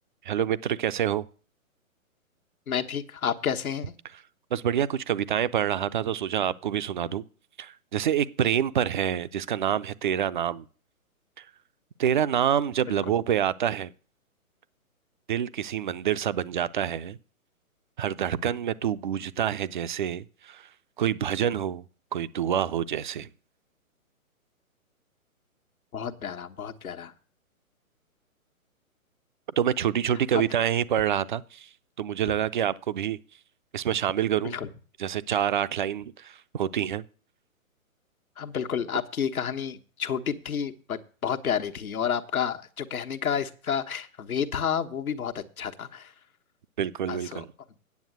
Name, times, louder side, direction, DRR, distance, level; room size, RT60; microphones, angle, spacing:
voice 1, 0.2-1.3 4.5-7.2 7.6-10.6 11.4-11.5 12.0-13.9 15.3-17.2 18.0-20.7 21.0-21.8 22.1-23.3 29.6-31.7 32.0-33.2 33.7-34.6 35.0-37.0 46.8-47.5, right 9 dB, 35° right, 0.5 m, -27 dB
voice 2, 2.7-4.0 25.9-27.1 30.3-30.4 34.5-34.7 38.4-46.1 47.1-47.4, left 8 dB, 80° left, 1.4 m, -30 dB
9.5 x 7.3 x 7.8 m
hypercardioid pair, 140°, 42 cm